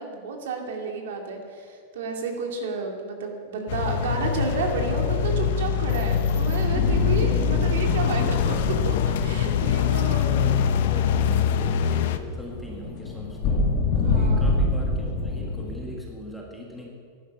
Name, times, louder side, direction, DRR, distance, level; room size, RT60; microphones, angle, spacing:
voice 1, 0.0-10.4 14.0-14.5, right 4 dB, 75° right, 2 dB, 2.5 m, -31 dB
sound 1, 3.7-12.2, left 8 dB, 55° left, 0.7 m, -23 dB
sound 2, 6.7-15.8, left 3 dB, 30° left, 2.1 m, -27 dB
voice 2, 7.3-7.7 10.0-13.7 14.0-16.9, left 1 dB, ahead, -2 dB, 1.5 m, -40 dB
15.0 x 11.0 x 5.5 m, 2.1 s
supercardioid pair, 180°, 0 cm